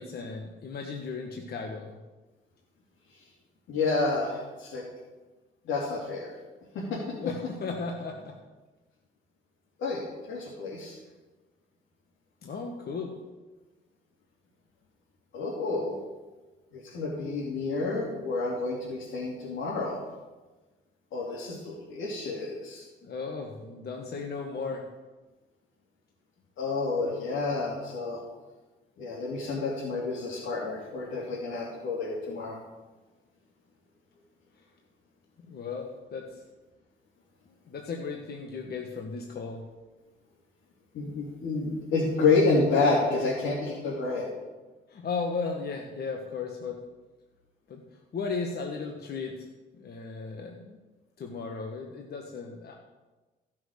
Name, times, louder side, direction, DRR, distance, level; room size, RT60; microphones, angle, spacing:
voice 1, 0.0-2.0 7.2-8.4 12.4-13.2 23.0-24.8 35.4-36.4 37.7-39.6 44.9-46.8 47.7-47.8 48.1-49.5 49.7-50.8 51.2-52.7, left 4 dB, 55° left, 2 dB, 1.4 m, -35 dB
voice 2, 3.7-4.8 5.6-6.3 6.7-7.0 9.8-10.0 10.3-11.0 15.3-16.0 16.7-20.0 21.1-22.8 26.6-28.2 29.0-32.6 40.9-44.3, left 3 dB, 80° left, -5 dB, 2.7 m, -29 dB
15.0 x 6.2 x 6.5 m, 1.2 s
cardioid pair, 90°, 20 cm